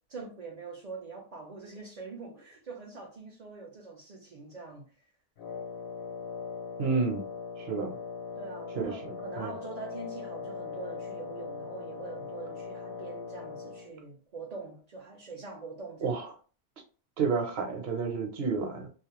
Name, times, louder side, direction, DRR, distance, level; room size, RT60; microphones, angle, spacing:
voice 1, 0.1-4.9 8.4-16.2, right 4 dB, 55° right, 0.5 m, -44 dB
Wind instrument woodwind instrument, 5.4-13.9, left 5 dB, 65° left, 0.8 m, -40 dB
voice 2, 6.8-7.3 7.6-8.0 8.8-9.0 9.4-9.5 16.0-16.3 17.2-18.9, right 5 dB, 70° right, 0.9 m, -30 dB
2.3 x 2.0 x 2.9 m
omnidirectional pair, 1.1 m